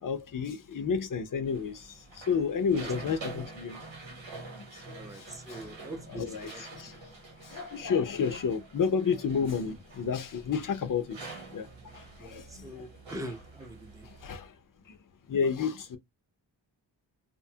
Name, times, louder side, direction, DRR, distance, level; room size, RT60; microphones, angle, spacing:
voice 1, 0.0-4.2 4.5-5.7 6.1-7.0 7.4-12.9 14.0-14.6 14.9-15.0 15.3-16.0, left 6 dB, 45° left, 0.6 m, -31 dB
sound 1, 1.5-14.3, right 3 dB, 90° right, 1.0 m, -47 dB
voice 2, 4.9-6.6 12.2-14.1, right 1 dB, 10° right, 0.6 m, -42 dB
2.8 x 2.1 x 2.7 m
wide cardioid pair, 85°, 44 cm